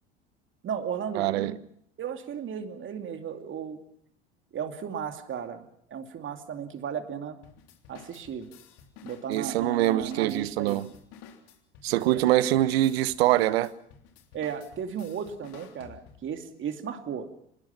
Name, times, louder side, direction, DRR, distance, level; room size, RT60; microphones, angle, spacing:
voice 1, 0.6-1.6 2.0-3.8 4.5-7.4 7.9-8.5 9.0-10.8 12.0-12.2 14.3-17.3, right 7 dB, 35° right, 2.6 m, -35 dB
voice 2, 1.1-1.5 9.3-10.9 11.8-13.7, right 15 dB, 65° right, 1.1 m, -24 dB
sound 1, 7.4-16.4, left 7 dB, 55° left, 3.4 m, -52 dB
26.0 x 20.5 x 5.9 m
figure-of-eight pair, 75°, 33 cm